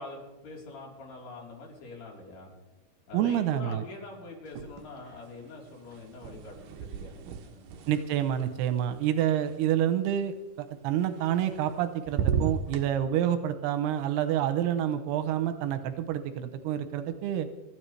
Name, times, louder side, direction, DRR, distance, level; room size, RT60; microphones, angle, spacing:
voice 1, 0.0-2.5 3.1-7.7, left 3 dB, 85° left, -3 dB, 6.0 m, -44 dB
voice 2, 3.1-3.8 7.9-17.5, right 10 dB, 85° right, 9 dB, 2.9 m, -28 dB
sound 1, 4.5-5.2 5.4-9.5 11.2-11.8 12.1-12.9, right 7 dB, 70° right, 2.4 m, -34 dB
25.5 x 14.0 x 3.3 m, 1.0 s
omnidirectional pair, 4.5 m